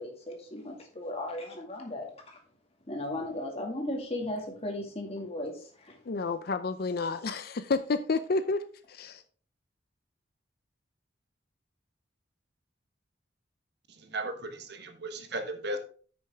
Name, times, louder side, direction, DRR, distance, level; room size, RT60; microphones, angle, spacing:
voice 1, 0.0-2.1 2.9-5.5, left 1 dB, 35° left, 2.1 m, -36 dB
voice 2, 6.1-8.6 8.9-9.2, left 3 dB, 55° left, 0.5 m, -30 dB
voice 3, 14.1-15.8, right 1 dB, 60° right, 1.3 m, -35 dB
9.1 x 6.3 x 3.5 m
head